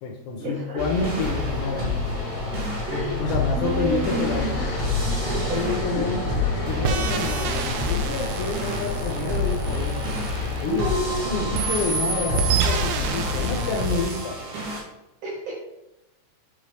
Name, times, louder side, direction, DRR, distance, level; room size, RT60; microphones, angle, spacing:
voice 1, 0.0-2.0 2.9-4.5 5.5-6.3 6.7-14.4, left 4 dB, 80° left, -1 dB, 3.0 m, -29 dB
cyberpunk dump, 0.8-14.8, left 3 dB, 65° right, 3.7 m, -30 dB
sound 1, 0.9-13.8, left 2 dB, 60° left, 1.9 m, -30 dB
voice 2, 2.9-3.2 3.6-4.7 5.3-5.4 10.7-11.4 15.2-15.6, right 1 dB, 45° right, -6 dB, 2.6 m, -29 dB
sound 2, 6.8-11.1 11.5-14.2, right 6 dB, 85° right, 2.7 m, -29 dB
7.2 x 5.2 x 3.5 m, 0.91 s
omnidirectional pair, 5.1 m